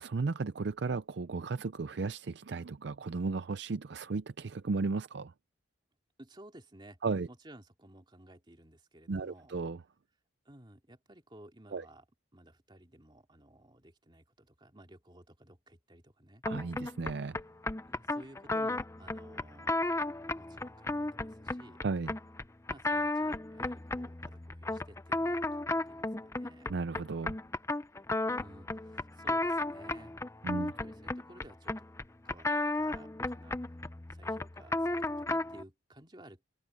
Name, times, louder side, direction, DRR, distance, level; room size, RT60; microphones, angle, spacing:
voice 1, 0.0-5.3 7.0-7.3 9.1-9.8 11.7-11.9 16.4-17.4 21.8-22.1 26.7-27.4 30.4-30.7, right 4 dB, 60° right, 0.5 m, -35 dB
voice 2, 6.2-7.0 7.3-9.5 10.4-12.0 12.3-16.4 17.9-19.8 20.3-21.8 22.7-26.7 28.3-30.2 30.8-31.8 32.2-32.5 32.7-33.6 34.1-36.5, right 1 dB, 25° right, 2.8 m, -55 dB
sound 1, 16.4-35.6, left 2 dB, 15° left, 0.5 m, -34 dB
head